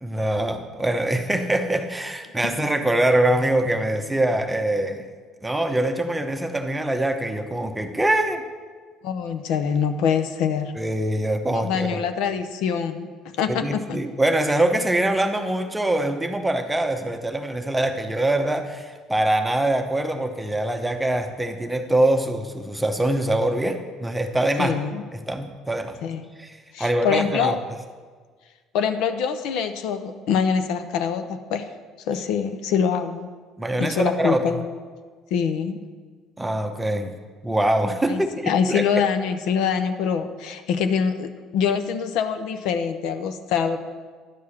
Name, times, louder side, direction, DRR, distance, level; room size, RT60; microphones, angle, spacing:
voice 1, 0.0-5.1 5.4-8.4 10.7-12.1 13.5-24.8 25.3-26.0 26.4-27.5 33.6-34.6 36.4-37.1 37.4-38.8, right 1 dB, 5° right, 6 dB, 0.8 m, -23 dB
voice 2, 9.0-10.7 11.5-14.0 24.6-25.0 26.0-26.2 26.7-27.6 28.7-31.7 32.1-33.3 33.8-34.7 35.3-35.8 38.1-43.8, left 7 dB, 75° left, 9 dB, 0.6 m, -24 dB
11.5 x 4.8 x 7.1 m, 1.5 s
cardioid pair, 115°, 0 cm